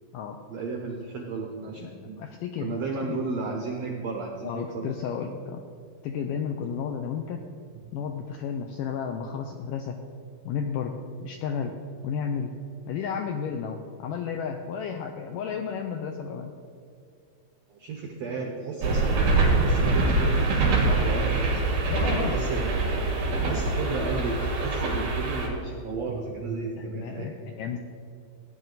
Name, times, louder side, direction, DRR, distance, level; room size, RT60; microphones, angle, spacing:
voice 1, 0.5-2.2 2.6-4.9 7.7-7.8 17.7-21.7 22.2-23.0 23.4-27.3, right 3 dB, 85° right, 1 dB, 1.4 m, -34 dB
voice 2, 2.2-2.8 3.0-3.2 4.4-5.6 6.0-7.4 7.9-10.0 10.5-11.8 12.0-12.5 12.9-16.5 21.9-22.5 23.4-23.6 26.8-27.8, left 7 dB, 85° left, 4 dB, 1.9 m, -32 dB
sound 1, 18.8-25.5, right 3 dB, 65° right, 4.1 m, -24 dB
16.0 x 9.7 x 4.0 m, 2.4 s
omnidirectional pair, 4.5 m